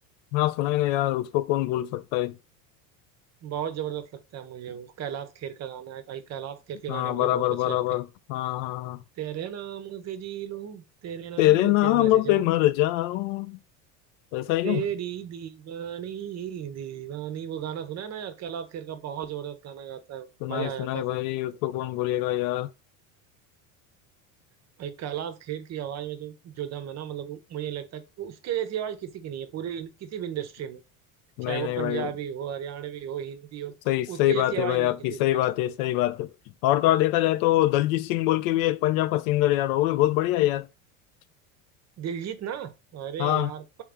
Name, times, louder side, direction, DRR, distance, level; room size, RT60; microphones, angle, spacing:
voice 1, 0.3-2.4 6.9-9.0 11.4-13.6 14.3-14.8 20.4-22.7 31.4-32.1 33.9-36.3 36.6-40.7 43.2-43.5, left 15 dB, 70° left, 0.5 m, -24 dB
voice 2, 3.4-8.0 9.2-12.5 14.6-21.2 24.8-30.8 31.5-33.7 34.1-35.4 42.0-43.8, right 10 dB, 40° right, 0.6 m, -35 dB
3.2 x 2.9 x 3.5 m
supercardioid pair, 95°, 42 cm